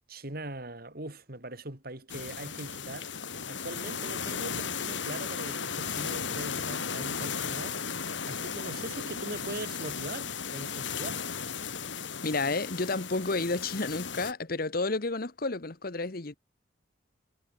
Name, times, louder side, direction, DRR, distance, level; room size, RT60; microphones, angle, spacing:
voice 1, 0.1-3.1 3.5-7.8 8.3-11.2, right 2 dB, 50° right, 3.6 m, -41 dB
sound 1, 2.1-14.3, left 6 dB, 75° left, 2.8 m, -35 dB
voice 2, 12.2-16.4, left 3 dB, 50° left, 1.2 m, -31 dB
head